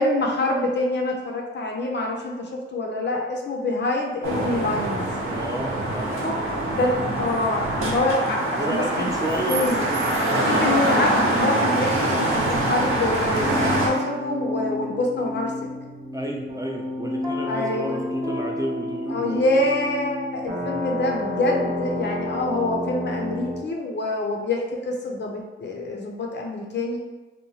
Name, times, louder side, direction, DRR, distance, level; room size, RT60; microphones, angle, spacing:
voice 1, 0.0-5.0 6.2-6.4 6.7-9.1 9.4-9.8 10.5-15.5 17.5-18.0 19.1-27.0, left 2 dB, 60° left, 0 dB, 0.5 m, -26 dB
sound 1, 4.2-13.9, right 1 dB, 80° right, 0.6 m, -24 dB
voice 2, 5.3-6.3 7.1-7.2 8.6-10.5 16.1-19.5 20.6-20.8, right 1 dB, 15° right, -1 dB, 0.3 m, -32 dB
sound 2, 13.4-23.6, left 1 dB, 40° right, 0.7 m, -30 dB
2.8 x 2.1 x 2.7 m, 1.2 s
wide cardioid pair, 100°, 21 cm